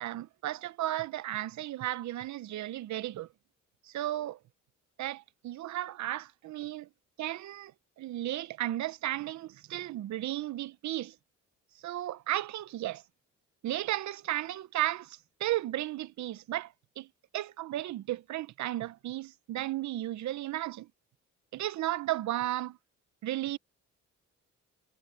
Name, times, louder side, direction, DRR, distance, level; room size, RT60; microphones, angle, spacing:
voice 1, 0.0-3.3 3.9-4.4 5.0-6.9 7.2-7.7 8.0-11.1 11.8-13.0 13.6-17.1 17.3-20.9 21.5-22.8 23.2-23.6, right 14 dB, 70° right, 0.8 m, -34 dB
cardioid pair, 90°, 30 cm